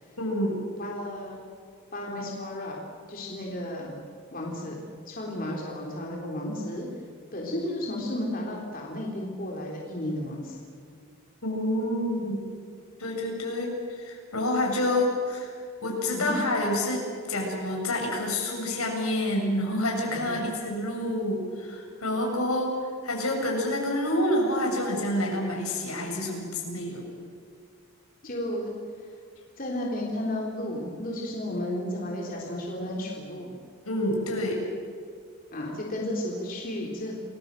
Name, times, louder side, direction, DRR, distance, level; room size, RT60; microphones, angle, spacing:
voice 1, 0.2-0.6 11.4-12.4 13.0-15.5 15.8-22.8 23.0-27.0 33.9-34.6, left 1 dB, 80° left, 0 dB, 7.0 m, -28 dB
voice 2, 0.8-1.4 1.9-2.8 3.1-4.0 4.3-4.8 5.1-6.9 7.3-10.5 16.1-16.4 20.1-20.4 28.2-28.7 29.6-33.5 35.5-37.1, left 1 dB, 40° left, -2 dB, 3.7 m, -33 dB
29.0 x 21.0 x 7.7 m, 2.2 s
head